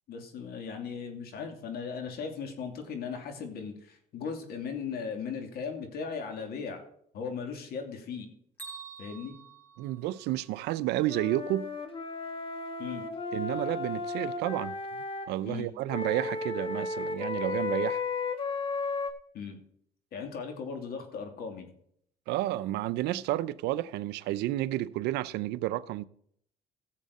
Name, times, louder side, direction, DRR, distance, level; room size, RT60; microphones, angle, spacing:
voice 1, 0.1-6.8 7.1-8.3 9.0-9.4 12.8-13.0 15.4-15.7 19.3-19.6 20.1-21.7, left 6 dB, 65° left, 2.8 m, -37 dB
Bell, 8.6-10.6, right 5 dB, 10° left, 4.2 m, -47 dB
voice 2, 9.8-11.7 13.3-14.8 15.3-18.0 22.3-26.0, right 15 dB, 85° right, 0.6 m, -31 dB
Wind instrument woodwind instrument, 11.1-15.3 15.9-19.1, left 4 dB, 30° left, 1.6 m, -34 dB
16.0 x 7.5 x 4.1 m
cardioid pair, 110°, 17 cm